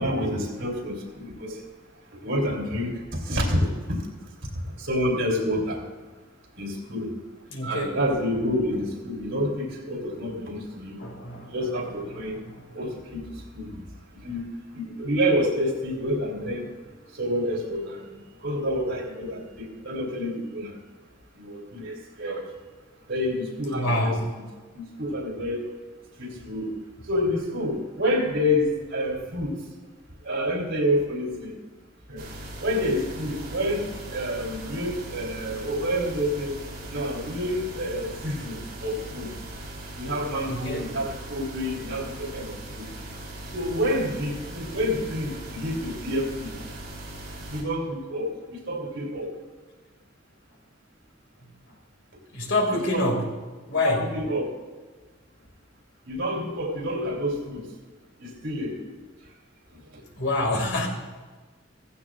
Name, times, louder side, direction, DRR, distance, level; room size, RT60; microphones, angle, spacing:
voice 1, 0.0-1.6 2.2-4.0 4.8-5.8 6.6-7.1 7.6-11.0 11.4-12.4 12.7-13.2 13.5-13.8 14.2-14.4 14.7-16.7 17.2-18.0 18.4-20.7 21.3-22.4 23.1-24.4 24.7-25.6 26.2-26.7 27.1-29.6 30.2-31.5 32.1-32.2 32.6-33.8 34.1-36.5 36.9-39.3 40.0-42.9 43.5-46.5 47.5-49.3 52.7-53.1 53.8-54.5 56.0-57.6 58.2-58.7, equal, 85° right, -2 dB, 3.4 m, -28 dB
voice 2, 7.5-8.0 11.0-11.5 12.5-12.6 23.7-24.2 40.5-40.8 52.3-53.3 53.7-54.0 60.2-60.9, left 1 dB, 75° left, 1 dB, 2.5 m, -26 dB
sound 1, 32.2-47.6, right 1 dB, 50° right, 3.4 m, -39 dB
16.5 x 15.0 x 2.5 m, 1.4 s
head